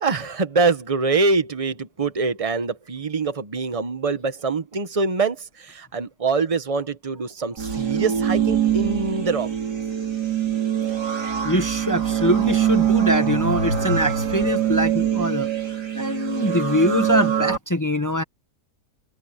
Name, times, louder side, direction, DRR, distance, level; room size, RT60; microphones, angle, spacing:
voice 1, 0.0-9.5, right 4 dB, 25° right, 1.2 m, -24 dB
sound 1, 7.6-17.6, right 9 dB, 85° right, 4.1 m, -23 dB
voice 2, 11.4-15.5 15.9-18.2, equal, 15° left, 0.9 m, -23 dB
omnidirectional pair, 1.7 m